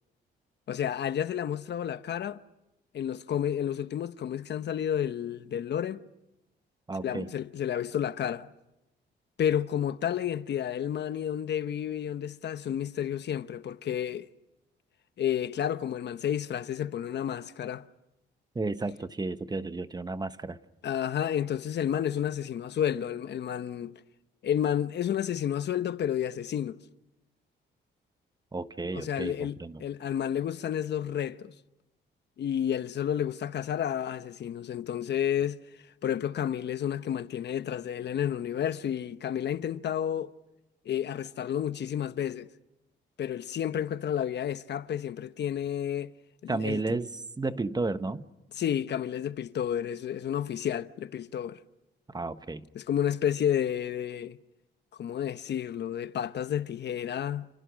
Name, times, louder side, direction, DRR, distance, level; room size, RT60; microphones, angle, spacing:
voice 1, 0.7-2.4 2.9-6.1 7.0-8.5 9.4-14.3 15.2-17.9 20.8-24.0 24.4-26.8 28.9-31.5 32.4-35.6 36.0-40.3 40.8-42.5 43.2-46.1 46.4-47.0 48.6-51.6 52.7-54.4 55.0-57.5, left 9 dB, 60° left, 1.0 m, -31 dB
voice 2, 6.9-7.3 18.5-20.6 28.5-29.8 46.5-48.3 52.1-52.7, right 3 dB, 20° right, 1.1 m, -32 dB
29.0 x 29.0 x 6.3 m
cardioid pair, 90°, 20 cm